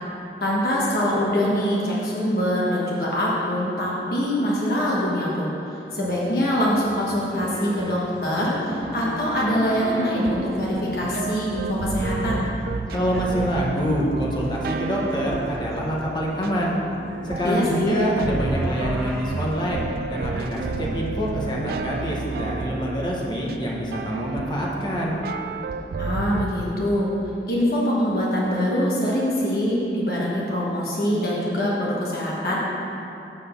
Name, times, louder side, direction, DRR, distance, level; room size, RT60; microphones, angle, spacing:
voice 1, 0.4-5.5 5.9-12.4 17.4-18.0 26.0-27.1 27.5-32.6, equal, 55° left, -6 dB, 1.2 m, -24 dB
sound 1, 6.0-14.3 15.3-15.9 16.3-21.4, equal, 5° left, 0.9 m, -38 dB
sound 2, 8.8-26.5, right 4 dB, 55° right, 0.3 m, -31 dB
voice 2, 12.9-16.7 17.2-25.2, equal, 25° left, -4 dB, 1.0 m, -26 dB
7.5 x 4.0 x 6.7 m, 3.0 s
head